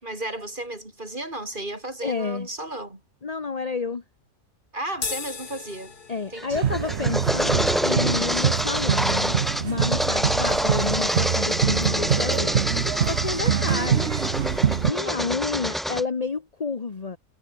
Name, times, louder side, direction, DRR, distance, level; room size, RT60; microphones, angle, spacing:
voice 1, 0.0-3.0 4.7-5.9 6.3-6.6 14.8-15.4, right 1 dB, 30° right, 4.7 m, -34 dB
voice 2, 2.0-2.5 3.2-4.0 6.1-9.3 9.6-14.2 14.8-17.2, left 4 dB, 30° left, 0.9 m, -30 dB
sound 1, 4.9-11.5, left 5 dB, 70° left, 2.8 m, -41 dB
sound 2, 6.4-16.0, equal, ahead, 2.4 m, -26 dB
sound 3, 6.5-14.9, right 8 dB, 50° right, 1.0 m, -25 dB
omnidirectional pair, 1.7 m